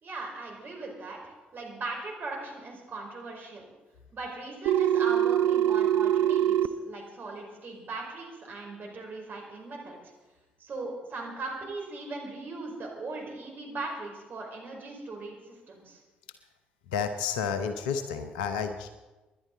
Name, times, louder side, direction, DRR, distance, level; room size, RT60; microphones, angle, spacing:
voice 1, 0.0-3.6 4.1-10.0 10.6-16.0, right 3 dB, 45° right, 0 dB, 5.1 m, -39 dB
Telephone, 4.7-6.7, right 10 dB, 65° right, 0.5 m, -23 dB
voice 2, 16.9-18.9, left 6 dB, 75° left, 9 dB, 0.9 m, -31 dB
26.5 x 11.0 x 4.0 m, 1.2 s
figure-of-eight pair, 45°, 5 cm